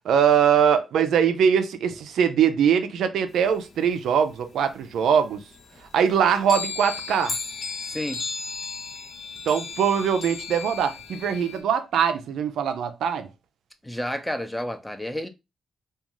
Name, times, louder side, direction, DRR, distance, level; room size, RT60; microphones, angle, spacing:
voice 1, 0.0-5.4 5.9-7.4 9.5-13.3, right 7 dB, 75° right, 0.3 m, -22 dB
sound 1, 3.4-4.8 5.2-5.3 5.5-11.6, left 4 dB, 60° left, 0.6 m, -35 dB
voice 2, 7.9-8.2 13.8-15.3, equal, 10° left, 0.6 m, -30 dB
2.4 x 2.3 x 2.9 m
hypercardioid pair, 40°, 0 cm